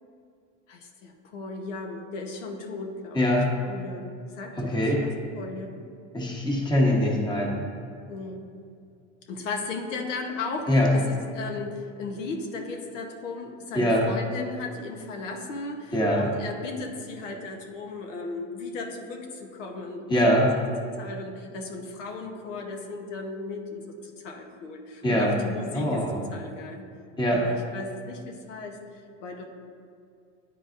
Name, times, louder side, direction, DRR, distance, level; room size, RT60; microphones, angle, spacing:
voice 1, 0.7-3.4 3.6-5.8 8.1-8.4 9.3-20.3 21.0-26.1 26.3-26.9 27.3-29.4, left 3 dB, 90° left, 2 dB, 1.0 m, -36 dB
voice 2, 3.1-3.5 4.6-5.0 6.1-7.6 10.7-10.9 13.7-14.0 15.9-16.2 20.1-20.5 25.0-25.3 25.7-26.2 27.2-27.4, equal, 10° left, -2 dB, 1.1 m, -22 dB
10.0 x 3.9 x 2.5 m, 2.4 s
supercardioid pair, 125°, 36 cm